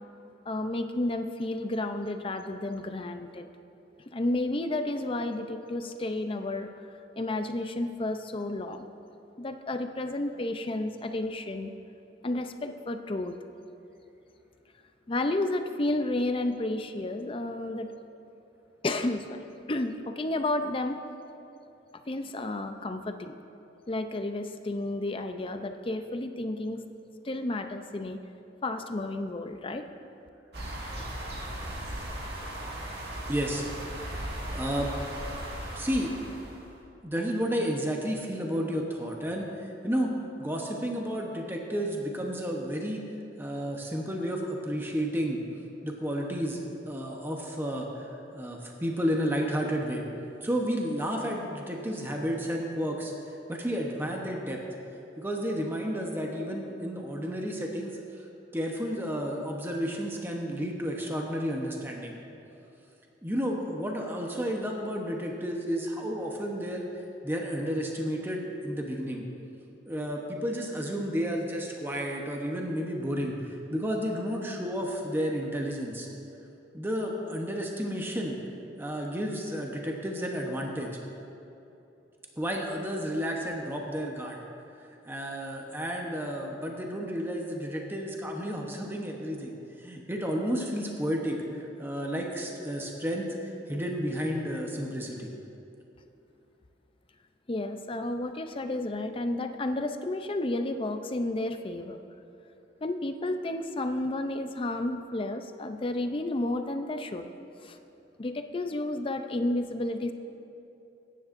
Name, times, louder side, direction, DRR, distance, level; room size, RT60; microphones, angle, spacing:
voice 1, 0.5-3.5 4.1-6.7 7.2-8.9 9.4-11.7 12.2-13.4 15.1-17.9 18.8-21.0 22.1-23.3 23.9-26.8 27.2-28.2 28.6-29.9 97.5-102.0 102.8-107.3 107.6-107.8 108.2-110.1, left 2 dB, 30° left, 7 dB, 0.5 m, -31 dB
sound 1, 30.5-36.7, right 1 dB, 60° right, 1.9 m, -37 dB
voice 2, 33.3-33.7 34.5-34.9 35.8-36.1 37.0-40.1 40.4-43.0 43.4-45.4 45.8-50.0 50.4-54.6 55.2-58.0 58.5-62.2 63.2-66.9 67.2-69.2 69.9-76.1 76.7-78.4 78.8-80.9 82.4-84.4 85.1-93.3 93.7-95.3, equal, 10° right, 0 dB, 0.9 m, -32 dB
21.0 x 10.0 x 2.6 m, 2.9 s
head